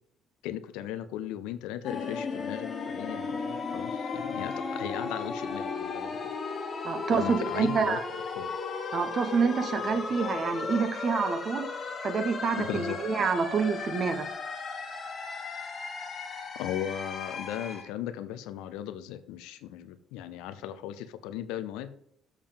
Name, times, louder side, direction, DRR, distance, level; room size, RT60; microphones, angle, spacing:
voice 1, 0.4-6.1 7.1-8.0 8.4-8.5 12.6-13.0 16.6-21.9, left 11 dB, 75° left, 12 dB, 0.6 m, -37 dB
sound 1, 1.8-17.8, left 4 dB, 40° left, 1.4 m, -35 dB
voice 2, 6.8-8.0 8.9-11.7 12.0-14.3, right 5 dB, 50° right, 8 dB, 1.3 m, -27 dB
7.4 x 5.0 x 5.2 m, 0.68 s
hypercardioid pair, 55°, 0 cm